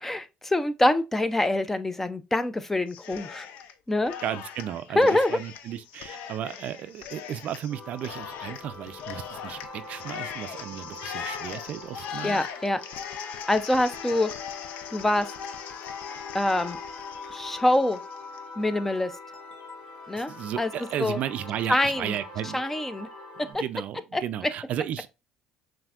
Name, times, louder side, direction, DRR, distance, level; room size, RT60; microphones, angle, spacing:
voice 1, 0.0-3.5 3.9-4.1 5.0-5.4 12.2-12.8 13.5-14.3 14.9-15.3 16.3-16.8 17.3-18.0 18.6-19.1 20.1-20.7 21.0-21.2 21.7-22.1 22.5-23.1 23.5-23.6 24.1-24.2, left 1 dB, 10° left, 0.4 m, -25 dB
Cheering, 2.9-3.7 4.0-18.4, left 8 dB, 70° left, 0.5 m, -40 dB
voice 2, 4.2-12.4 20.3-22.6 23.5-25.1, right 10 dB, 60° right, 0.3 m, -34 dB
sound 1, 7.7-23.5, left 3 dB, 50° left, 1.3 m, -43 dB
5.6 x 2.6 x 2.4 m
supercardioid pair, 90°, 3 cm